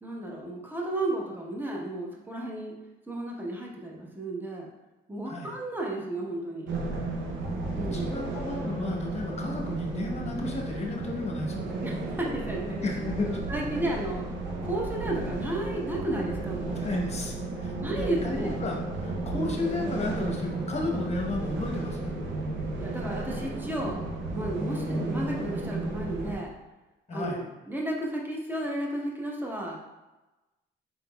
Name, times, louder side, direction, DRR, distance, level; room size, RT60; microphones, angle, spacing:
voice 1, 0.0-2.7 3.1-4.7 5.1-6.7 7.7-8.1 11.8-12.8 13.2-14.3 14.6-16.8 17.8-18.5 22.8-24.0 24.3-26.5 27.1-29.8, right 1 dB, 10° right, -2 dB, 0.9 m, -33 dB
sound 1, 6.7-26.4, right 2 dB, 75° right, 0.6 m, -33 dB
voice 2, 7.4-11.7 12.8-13.3 16.7-22.1 27.1-27.4, left 3 dB, 35° left, 0 dB, 0.9 m, -33 dB
4.3 x 3.9 x 2.2 m, 1.1 s
cardioid pair, 90°, 20 cm